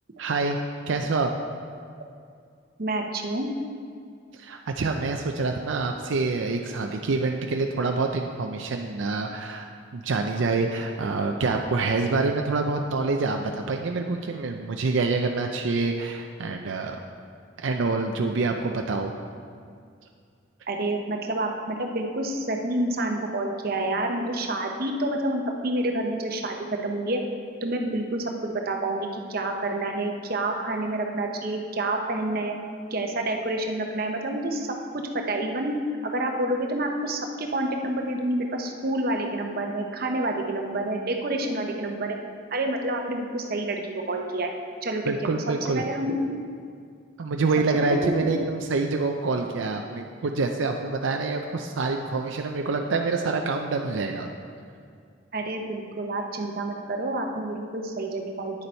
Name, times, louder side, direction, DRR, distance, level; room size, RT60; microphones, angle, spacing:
voice 1, 0.2-0.6 0.9-1.3 4.3-9.7 9.9-17.0 17.6-19.1 45.1-45.8 47.2-54.3, right 3 dB, 80° right, 3 dB, 0.5 m, -26 dB
voice 2, 2.8-3.5 20.7-27.2 27.6-32.5 32.9-35.8 36.1-42.2 42.5-43.8 44.1-44.5 44.8-45.4 45.7-46.3 47.8-48.3 55.3-58.7, right 1 dB, 50° right, 3 dB, 0.8 m, -28 dB
9.5 x 6.8 x 4.4 m, 2.2 s
head